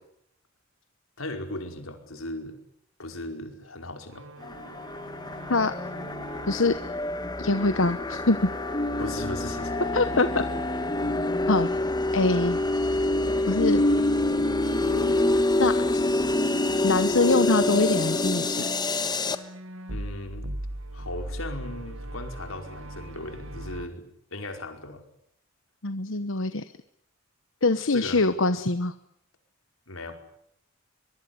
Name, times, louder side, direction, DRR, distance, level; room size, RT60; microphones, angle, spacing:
voice 1, 1.2-2.6 3.0-4.3 9.0-9.7 19.9-20.5 20.9-25.0 27.9-28.2 29.9-30.2, left 2 dB, 90° left, 5 dB, 5.1 m, -37 dB
sound 1, 4.1-11.2 11.5-15.6 16.2-23.9, right 1 dB, 85° right, 1.7 m, -41 dB
sound 2, 4.4-19.4, left 2 dB, 20° left, 1.5 m, -26 dB
voice 2, 6.5-6.8 7.4-8.5 9.9-10.4 11.5-11.7 12.1-12.6 13.5-13.8 15.6-16.0 16.8-18.6 25.8-26.6 27.6-28.9, left 3 dB, 70° left, 11 dB, 1.1 m, -23 dB
23.5 x 23.0 x 9.8 m, 0.73 s
head